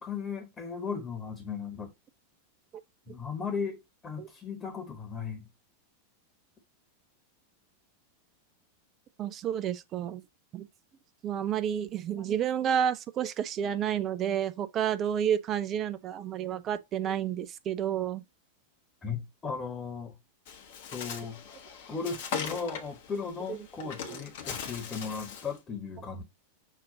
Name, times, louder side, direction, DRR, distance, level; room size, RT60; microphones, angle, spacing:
voice 1, 0.0-1.9 3.1-5.5 19.0-20.1 20.9-21.4 21.9-26.2, left 5 dB, 20° left, 1.1 m, -36 dB
voice 2, 9.2-10.2 10.5-10.7 11.2-18.2 23.5-23.7 24.0-24.2, right 9 dB, 30° right, 0.4 m, -30 dB
Bird, 20.5-25.6, left 7 dB, 50° left, 0.9 m, -40 dB
5.5 x 2.5 x 3.8 m
figure-of-eight pair, 90°, 0 cm